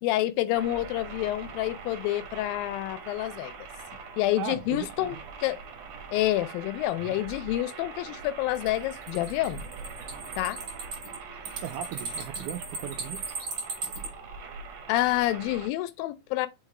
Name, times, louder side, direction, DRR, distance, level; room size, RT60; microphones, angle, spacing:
voice 1, 0.0-3.5 4.2-5.6 6.1-9.6 10.4-10.6 14.9-16.5, left 15 dB, 80° left, 2.2 m, -28 dB
sound 1, 0.5-15.7, right 5 dB, 60° right, 2.0 m, -43 dB
voice 2, 4.4-5.2 7.1-7.2 11.6-13.3, right 10 dB, 85° right, 1.9 m, -37 dB
sound 2, 8.5-14.1, right 4 dB, 35° right, 1.9 m, -37 dB
5.5 x 3.9 x 4.7 m
omnidirectional pair, 4.2 m